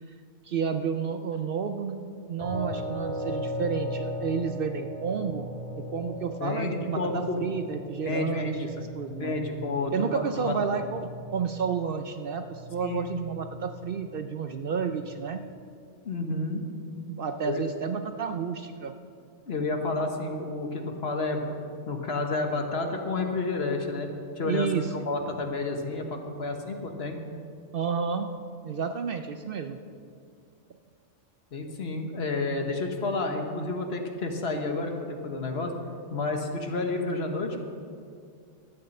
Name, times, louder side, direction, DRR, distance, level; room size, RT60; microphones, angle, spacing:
voice 1, 0.4-5.5 5.8-9.4 9.9-15.4 17.1-18.9 24.4-25.1 27.7-28.3 28.6-29.8, right 6 dB, 60° right, 7 dB, 0.7 m, -31 dB
sound 1, 2.4-15.4, equal, 35° right, 2.3 m, -38 dB
voice 2, 6.4-7.4 8.0-8.9 9.2-10.5 12.8-13.0 16.0-16.7 17.5-17.6 19.4-21.6 21.9-24.1 24.4-27.2 31.5-35.8 36.1-37.6, left 3 dB, 60° left, 4 dB, 1.4 m, -30 dB
12.0 x 8.9 x 6.5 m, 2.3 s
omnidirectional pair, 1.2 m